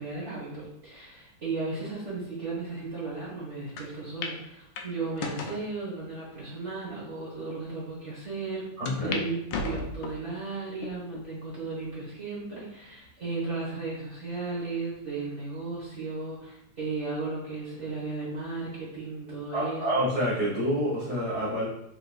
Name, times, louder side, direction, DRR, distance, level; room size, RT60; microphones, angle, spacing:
voice 1, 0.0-8.7 9.0-20.1, right 3 dB, 45° right, -7 dB, 1.1 m, -35 dB
sound 1, 3.8-3.9 4.2-4.4 4.8-5.6 6.3-6.4 7.1-7.2 7.5-7.6 8.9-9.2 9.5-10.3 10.8-11.3 11.8-11.9 13.0-13.5, left 3 dB, 75° left, 1.2 m, -35 dB
voice 2, 8.8-9.2 19.5-21.6, equal, 30° left, -8 dB, 0.6 m, -28 dB
4.3 x 3.8 x 2.3 m, 0.79 s
omnidirectional pair, 2.3 m